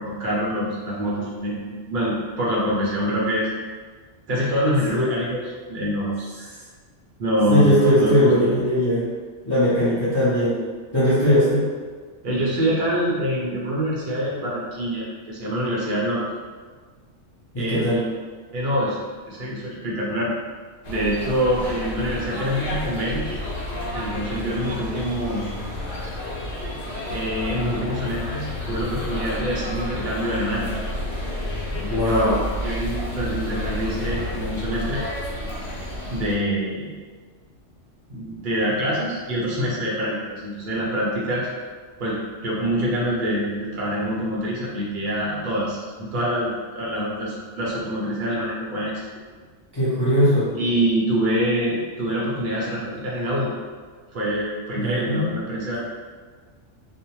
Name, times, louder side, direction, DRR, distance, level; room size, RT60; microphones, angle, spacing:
voice 1, 0.0-1.5 1.9-3.5 4.3-6.5 7.2-8.3 12.2-16.2 17.6-18.0 18.5-19.0 19.3-20.3 20.9-23.4 23.9-25.5 27.1-30.7 31.8-32.3 32.6-35.0 36.1-36.9 38.1-41.5 42.0-46.5 46.7-49.0 50.6-53.5 54.1-55.8, equal, 50° right, -5 dB, 0.7 m, -25 dB
voice 2, 7.5-9.0 9.4-10.6 10.9-11.7 17.5-18.0 31.9-32.4 49.7-50.5 54.7-55.4, equal, 30° left, -12 dB, 0.5 m, -19 dB
sound 1, 20.8-36.3, left 1 dB, 85° left, 1.0 m, -30 dB
2.5 x 2.1 x 2.9 m, 1.5 s
omnidirectional pair, 1.3 m